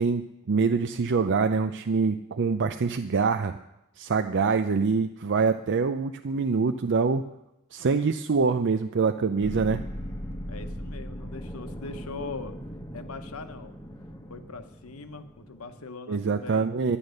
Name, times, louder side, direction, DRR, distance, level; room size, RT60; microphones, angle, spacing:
voice 1, 0.0-3.5 4.0-7.3 7.7-9.8 16.1-17.0, right 5 dB, 55° right, 7 dB, 0.5 m, -25 dB
sound 1, 9.4-15.9, equal, 15° left, 1.1 m, -39 dB
voice 2, 10.5-12.6 12.9-13.7 14.3-16.7, left 3 dB, 70° left, 9 dB, 1.0 m, -41 dB
11.5 x 10.5 x 6.5 m, 0.87 s
head